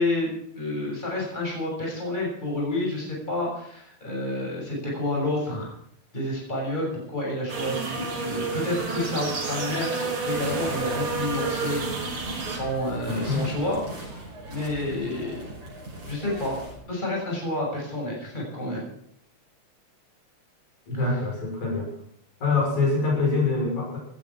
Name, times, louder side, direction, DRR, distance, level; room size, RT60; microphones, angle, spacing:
voice 1, 0.0-5.7 6.1-11.8 12.5-13.8 14.5-15.5 16.0-18.9, left 1 dB, 15° left, -3 dB, 6.9 m, -29 dB
sound 1, 7.5-12.6, right 4 dB, 45° right, 3.8 m, -30 dB
sound 2, 10.3-16.8, right 1 dB, 90° right, 7.4 m, -39 dB
voice 2, 13.1-13.5 20.9-21.9 22.4-24.0, left 3 dB, 85° left, -2 dB, 7.8 m, -25 dB
18.5 x 11.5 x 6.3 m, 0.68 s
omnidirectional pair, 3.3 m